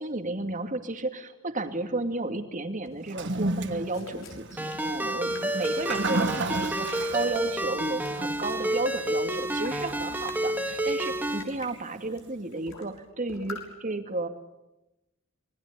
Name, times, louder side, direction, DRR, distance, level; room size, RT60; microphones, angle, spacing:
voice 1, 0.0-14.3, right 2 dB, 40° right, 7 dB, 2.5 m, -33 dB
sound 1, 2.8-7.6 8.0-10.5 10.9-11.7 12.2-12.3 12.5-13.0 13.3-13.6, left 4 dB, 80° left, 6.3 m, -46 dB
Toilet flush, 3.0-12.3, right 2 dB, 60° right, 1.4 m, -35 dB
Ringtone, 4.6-11.4, right 1 dB, 10° right, 2.0 m, -30 dB
27.0 x 21.5 x 8.4 m, 0.94 s
head